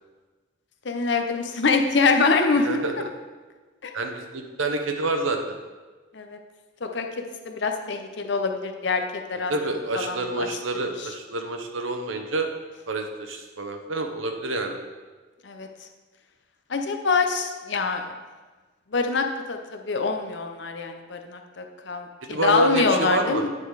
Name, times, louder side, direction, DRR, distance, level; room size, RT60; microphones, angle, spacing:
voice 1, 0.8-2.8 3.8-3.9 6.1-6.4 6.8-9.5 9.9-10.5 11.0-11.1 15.4-15.7 16.7-18.1 18.9-23.5, left 4 dB, 60° left, 5 dB, 0.7 m, -25 dB
voice 2, 2.6-2.9 3.9-5.6 9.5-12.5 12.9-14.8 22.3-23.4, right 2 dB, 80° right, 5 dB, 0.9 m, -28 dB
9.8 x 4.0 x 4.8 m, 1.3 s
head